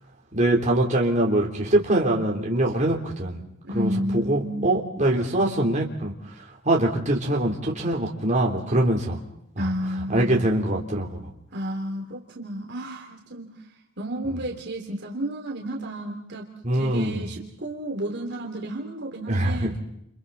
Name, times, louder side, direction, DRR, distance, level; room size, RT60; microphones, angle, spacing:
voice 1, 0.3-3.4 3.8-6.1 6.6-9.2 9.6-9.7 10.1-11.2 16.6-17.3 19.3-19.8, right 1 dB, 35° right, -1 dB, 3.7 m, -23 dB
voice 2, 3.6-4.8 9.6-10.5 11.5-13.7 14.0-19.8, equal, 50° right, 0 dB, 3.1 m, -32 dB
30.0 x 29.5 x 4.2 m, 0.77 s
head